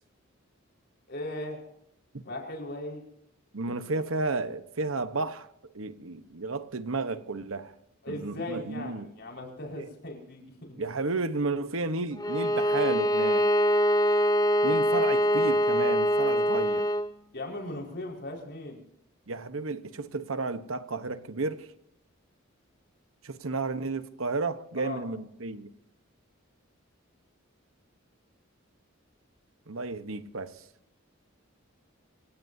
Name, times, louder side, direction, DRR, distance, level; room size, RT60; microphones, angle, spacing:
voice 1, 1.1-1.7 2.2-3.0 3.7-3.8 8.0-10.8 17.3-18.8 24.8-25.0, left 1 dB, 55° left, 5.1 m, -38 dB
voice 2, 3.5-5.5 5.7-7.7 8.1-9.1 9.8-9.9 10.8-13.5 14.6-16.9 19.3-21.7 23.2-25.7 29.7-30.6, right 3 dB, 75° right, 1.1 m, -32 dB
Bowed string instrument, 12.2-17.1, equal, 20° left, 0.7 m, -24 dB
27.0 x 17.5 x 2.8 m
head